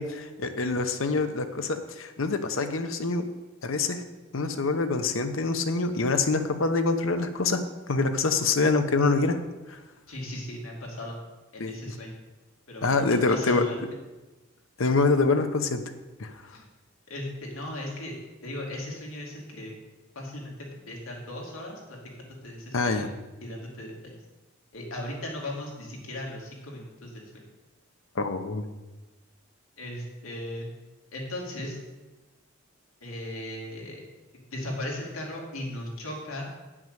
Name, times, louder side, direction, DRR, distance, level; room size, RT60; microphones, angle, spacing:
voice 1, 0.0-3.3 3.6-4.0 4.3-7.6 7.9-9.4 9.7-9.8 11.6-11.9 12.8-13.6 14.8-15.8 16.2-16.3 22.7-23.1 28.2-28.6, left 3 dB, 70° left, 8 dB, 0.8 m, -25 dB
voice 2, 10.1-11.2 11.5-12.2 12.7-13.8 16.5-16.6 17.1-18.2 18.4-19.8 20.1-23.0 23.4-24.2 24.7-27.4 29.8-30.7 31.1-31.8 33.0-34.0 34.5-36.5, left 1 dB, 90° left, -1 dB, 2.6 m, -37 dB
9.1 x 6.2 x 6.4 m, 1.1 s
head